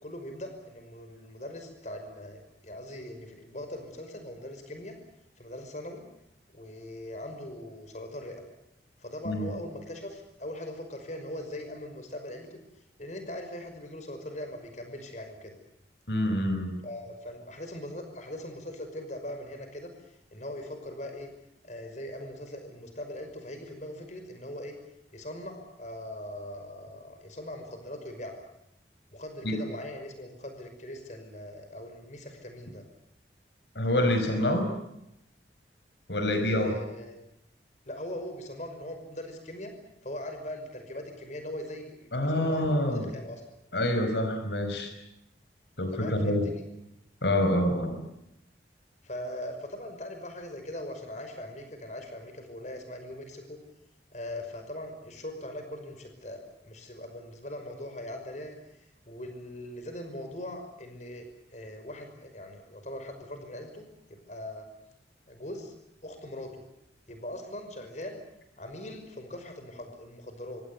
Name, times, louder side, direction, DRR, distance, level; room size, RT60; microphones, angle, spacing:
voice 1, 0.0-4.9 5.4-6.0 6.5-8.4 9.0-12.6 13.0-15.6 16.8-21.3 21.6-24.7 25.1-28.4 29.1-32.8 36.6-37.2 37.8-39.7 40.0-43.4 45.9-46.6 49.0-53.6 54.1-58.6 59.1-63.8 64.1-64.7 65.3-65.7 66.0-66.6 67.1-68.2 68.6-70.6, left 1 dB, 40° left, 6 dB, 5.7 m, -41 dB
voice 2, 16.1-16.8 29.4-29.6 33.7-34.7 36.1-36.8 42.1-43.1 43.7-44.9 45.8-46.5 47.2-48.0, left 1 dB, 75° left, 7 dB, 5.0 m, -26 dB
27.0 x 24.5 x 6.9 m, 0.82 s
head